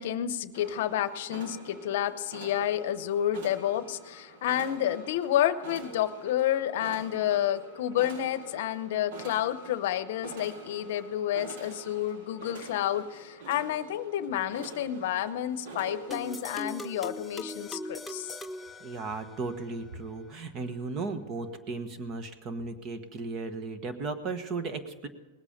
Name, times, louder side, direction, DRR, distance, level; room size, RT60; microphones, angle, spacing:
voice 1, 0.0-18.4, left 11 dB, 65° left, 14 dB, 0.7 m, -30 dB
sound 1, 0.5-16.5, right 2 dB, 65° right, 2.2 m, -46 dB
sound 2, 16.1-19.6, left 2 dB, 10° left, 0.6 m, -40 dB
voice 2, 18.8-25.1, right 3 dB, 35° right, 9 dB, 1.3 m, -35 dB
19.5 x 8.3 x 5.2 m, 1.2 s
supercardioid pair, 140°, 0 cm